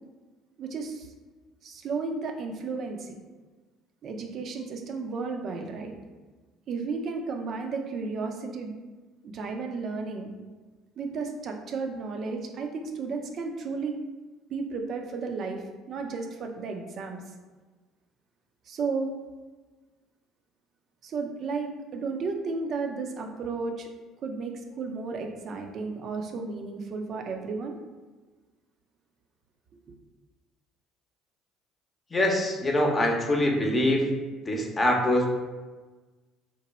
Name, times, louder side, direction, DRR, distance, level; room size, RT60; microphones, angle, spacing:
voice 1, 0.6-1.1 1.6-3.1 4.0-5.9 6.7-8.7 9.2-10.3 11.0-13.9 14.5-17.2 18.7-19.1 21.0-23.9 24.2-27.7, right 4 dB, 50° right, 3 dB, 0.5 m, -33 dB
voice 2, 32.1-34.0 34.4-35.3, left 1 dB, 30° left, 1 dB, 0.7 m, -24 dB
2.9 x 2.2 x 4.0 m, 1.3 s
hypercardioid pair, 55°, 0 cm